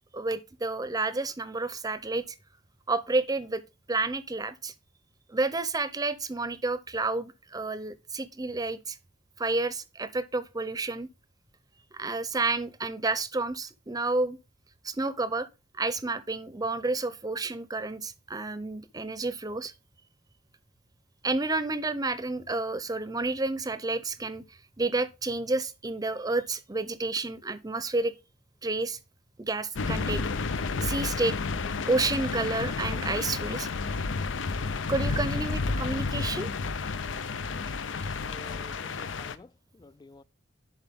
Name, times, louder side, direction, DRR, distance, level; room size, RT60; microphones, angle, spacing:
voice 1, 0.1-2.2 2.9-3.6 3.9-4.7 5.3-9.0 9.4-11.1 11.9-14.4 14.8-15.5 15.8-19.7 21.2-24.4 24.8-28.1 28.6-29.0 29.4-30.3 30.8-31.4 31.9-33.7 34.9-36.5, right 3 dB, 20° right, 0.7 m, -30 dB
sound 1, 29.8-39.4, left 4 dB, 75° left, 0.6 m, -31 dB
voice 2, 38.2-40.2, left 3 dB, 20° left, 0.3 m, -50 dB
11.0 x 4.4 x 3.6 m
head